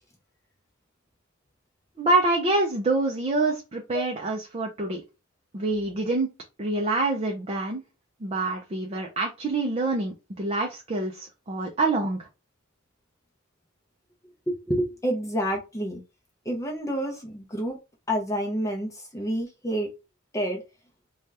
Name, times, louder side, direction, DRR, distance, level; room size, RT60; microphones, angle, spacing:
voice 1, 2.0-5.0 5.5-6.3 6.6-7.8 8.2-12.3, right 2 dB, 30° right, 0.5 m, -26 dB
voice 2, 14.5-16.0 16.5-17.8 18.1-19.9 20.3-20.6, equal, 15° left, 0.6 m, -28 dB
2.8 x 2.3 x 3.2 m
head